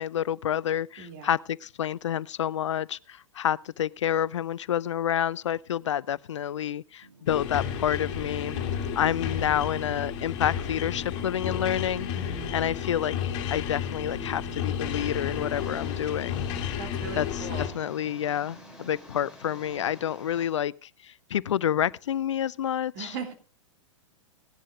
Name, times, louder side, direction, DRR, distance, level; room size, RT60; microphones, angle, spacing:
voice 1, 0.0-12.1 12.5-16.4 17.2-23.1, left 10 dB, 65° left, 0.4 m, -29 dB
voice 2, 1.0-1.3 12.1-12.6 16.8-17.7 22.9-23.3, right 6 dB, 45° right, 2.9 m, -39 dB
sound 1, 7.0-19.0, right 4 dB, 75° right, 2.3 m, -49 dB
sound 2, 7.3-17.7, left 9 dB, 40° left, 2.3 m, -32 dB
sound 3, 14.8-20.5, left 1 dB, 5° right, 3.2 m, -49 dB
18.0 x 11.0 x 2.5 m
figure-of-eight pair, 105°, 17 cm